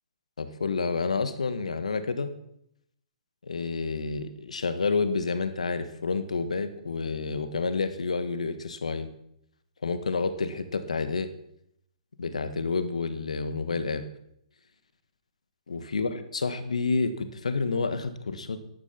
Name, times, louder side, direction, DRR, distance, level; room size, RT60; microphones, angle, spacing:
voice 1, 0.4-2.3 3.4-9.1 9.8-11.3 12.2-14.0 15.7-18.6, left 4 dB, 70° left, 11 dB, 1.5 m, -29 dB
13.5 x 11.0 x 5.9 m, 0.76 s
figure-of-eight pair, 125°, 4 cm